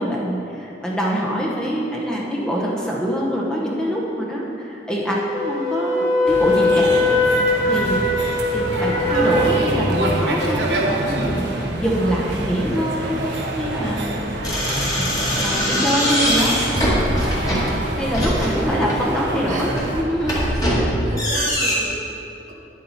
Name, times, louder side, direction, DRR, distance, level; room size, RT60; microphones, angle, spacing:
voice 1, 0.0-8.2 8.5-14.3 14.8-15.1 15.3-16.6 18.0-20.4, equal, 5° left, -4 dB, 1.1 m, -24 dB
Wind instrument woodwind instrument, 5.3-10.0, left 2 dB, 40° left, 2.0 m, -20 dB
sound 1, 6.3-20.0, right 1 dB, 75° right, 1.2 m, -26 dB
sound 2, 14.4-19.0 19.6-21.8, equal, 20° left, 2.1 m, -22 dB
voice 2, 17.5-18.7 19.4-20.7 21.0-22.5, right 1 dB, 45° right, -1 dB, 1.1 m, -36 dB
10.5 x 7.4 x 4.2 m, 2.9 s
head